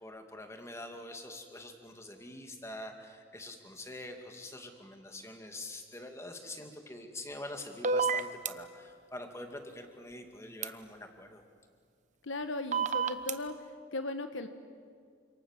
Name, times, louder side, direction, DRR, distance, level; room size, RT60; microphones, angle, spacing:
voice 1, 0.0-11.4, left 1 dB, 15° left, 4 dB, 2.4 m, -45 dB
sound 1, 7.8-8.5 10.6-10.7 12.7-13.3, right 5 dB, 35° right, 1.0 m, -28 dB
voice 2, 12.2-13.6 13.9-14.5, left 2 dB, 75° left, 8 dB, 1.3 m, -37 dB
29.0 x 26.5 x 7.4 m, 2.1 s
head